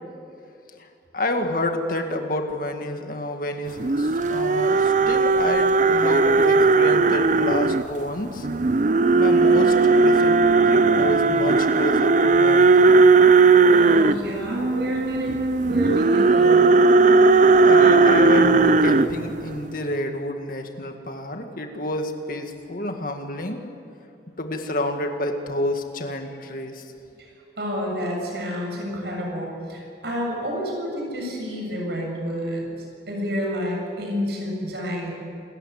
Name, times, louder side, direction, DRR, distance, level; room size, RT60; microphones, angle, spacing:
voice 1, 1.1-8.5 9.1-10.4 10.7-12.8 17.6-23.7 24.4-26.8, left 1 dB, 50° left, 5 dB, 2.1 m, -29 dB
sound 1, 3.8-7.8 8.4-19.6, right 3 dB, 45° right, 0.6 m, -17 dB
voice 2, 13.7-15.3 15.6-16.7 27.6-32.7 33.1-35.1, equal, 65° right, -1 dB, 7.5 m, -29 dB
27.5 x 14.0 x 9.7 m, 2.5 s
head